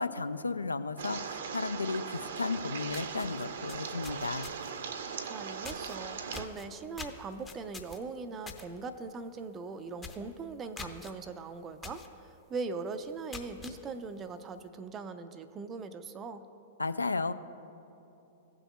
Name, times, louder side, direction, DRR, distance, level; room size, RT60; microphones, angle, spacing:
voice 1, 0.0-4.5 16.8-17.3, left 3 dB, 80° left, 12 dB, 0.3 m, -34 dB
sound 1, 1.0-6.5, right 6 dB, 60° right, 0.6 m, -39 dB
sound 2, 2.5-2.6 2.9-4.8 5.6-6.0 6.3-8.7 9.0-9.3 9.6-9.7 10.0-10.3 10.8-11.1 11.8-12.1 12.5-12.6 13.1-13.8, left 4 dB, 15° left, 0.7 m, -45 dB
voice 2, 5.2-12.0 12.5-16.5, right 4 dB, 25° right, 10 dB, 0.4 m, -40 dB
16.5 x 6.2 x 2.2 m, 2.9 s
figure-of-eight pair, 105°, 0 cm